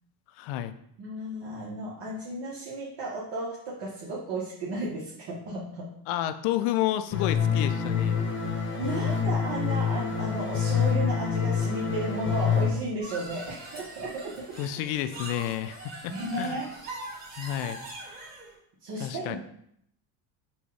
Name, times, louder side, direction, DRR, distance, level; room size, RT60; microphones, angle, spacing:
voice 1, 0.4-0.7 6.1-8.2 14.6-16.6 17.4-17.8 19.0-19.4, left 12 dB, 75° left, 11 dB, 0.5 m, -30 dB
voice 2, 1.0-5.9 8.7-14.3 16.1-16.7 18.8-19.4, right 1 dB, 55° right, -5 dB, 1.1 m, -34 dB
sound 1, 7.1-12.7, left 6 dB, 25° left, 0.9 m, -26 dB
sound 2, 13.0-18.5, right 2 dB, 20° right, 1.7 m, -42 dB
4.1 x 2.3 x 4.6 m, 0.71 s
supercardioid pair, 100°, 49 cm